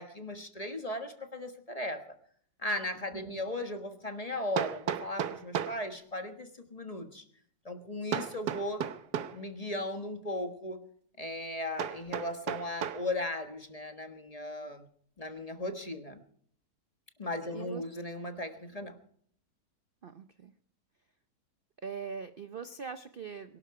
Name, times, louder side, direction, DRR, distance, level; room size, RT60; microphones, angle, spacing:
voice 1, 0.0-2.0 2.6-7.2 7.6-8.9 9.3-10.8 11.2-14.9 15.2-16.2 17.2-19.0, left 1 dB, 25° left, 7 dB, 1.3 m, -37 dB
Hammer, 3.0-3.1 4.6-5.8 8.1-9.4 11.8-13.1, right 8 dB, 85° right, 1.5 m, -34 dB
voice 2, 3.1-3.5 17.5-17.8 20.0-20.5 21.8-23.6, right 6 dB, 50° right, 10 dB, 0.7 m, -42 dB
22.5 x 11.5 x 4.8 m, 0.63 s
omnidirectional pair, 1.7 m